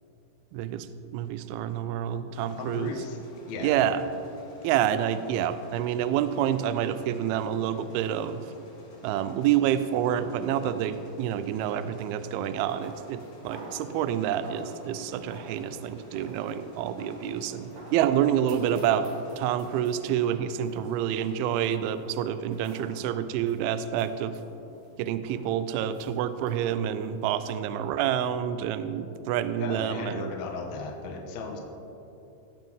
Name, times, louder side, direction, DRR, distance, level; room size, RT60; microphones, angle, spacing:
voice 1, 0.5-0.9 1.1-2.9 3.6-4.0 4.6-8.4 9.0-19.1 19.4-24.4 25.0-30.3, right 10 dB, 85° right, 12 dB, 2.2 m, -28 dB
sound 1, 2.3-20.2, left 2 dB, 50° left, 2.7 m, -52 dB
voice 2, 2.6-3.2 3.5-3.8 29.6-31.6, left 4 dB, 80° left, 1 dB, 1.6 m, -36 dB
sound 2, 12.7-28.1, right 2 dB, 60° right, 1.5 m, -48 dB
18.5 x 7.6 x 3.6 m, 3.0 s
omnidirectional pair, 4.9 m